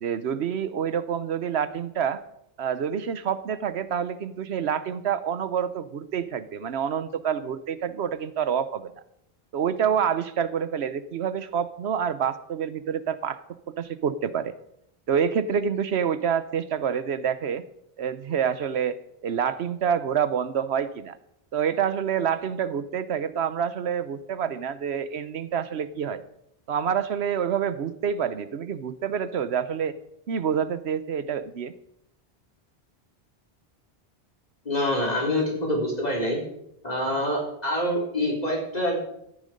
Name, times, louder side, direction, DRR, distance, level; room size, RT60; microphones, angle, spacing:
voice 1, 0.0-2.2 2.6-8.9 9.5-13.4 13.7-14.5 15.1-17.6 18.0-21.1 21.5-26.2 26.7-30.0 30.3-31.7, right 8 dB, 85° right, 14 dB, 1.1 m, -27 dB
voice 2, 34.6-36.4 36.8-39.0, left 1 dB, 40° left, -2 dB, 4.5 m, -26 dB
14.5 x 10.0 x 5.2 m, 0.77 s
omnidirectional pair, 1.1 m